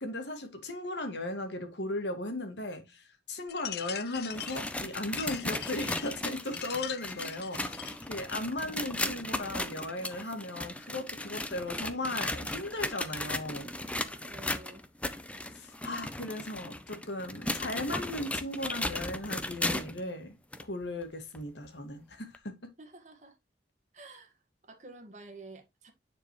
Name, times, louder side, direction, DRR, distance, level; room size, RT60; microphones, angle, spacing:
voice 1, 0.0-13.7 15.5-20.3 20.6-22.6, left 1 dB, 80° left, 1.9 m, -37 dB
sound 1, 3.5-8.1, left 12 dB, 60° left, 0.5 m, -42 dB
sound 2, 4.2-20.0 20.5-20.6 21.3-21.4 22.3-22.4, left 1 dB, 5° left, 0.5 m, -36 dB
voice 2, 14.0-14.9 22.8-23.4 23.9-24.4 24.7-25.9, right 2 dB, 40° right, 1.7 m, -50 dB
9.6 x 4.5 x 3.1 m
head